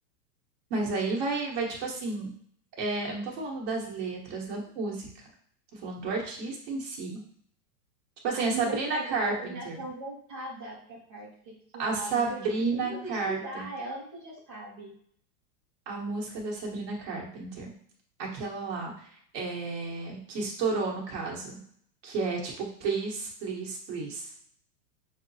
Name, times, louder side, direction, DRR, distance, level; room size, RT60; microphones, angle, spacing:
voice 1, 0.7-2.3 2.8-5.3 5.7-7.2 8.2-9.8 11.8-13.7 15.9-17.7 18.2-19.1 19.3-21.6 22.0-24.3, right 3 dB, 40° right, -2 dB, 1.2 m, -32 dB
voice 2, 8.3-12.4 12.7-14.9, right 2 dB, 20° right, -9 dB, 0.3 m, -40 dB
6.0 x 2.0 x 2.7 m, 0.62 s
supercardioid pair, 155°, 49 cm